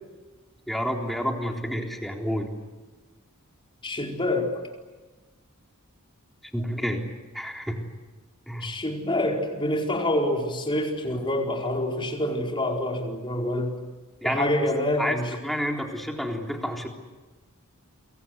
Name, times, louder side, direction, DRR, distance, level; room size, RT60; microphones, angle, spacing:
voice 1, 0.7-2.5 6.5-7.0 7.3-7.8 8.5-8.7 14.2-14.5 15.0-15.2 15.4-16.9, equal, ahead, 1 dB, 3.7 m, -29 dB
voice 2, 3.8-4.6 8.6-13.7 14.2-15.3, left 1 dB, 25° left, 1 dB, 4.7 m, -26 dB
29.0 x 23.5 x 8.2 m, 1.2 s
head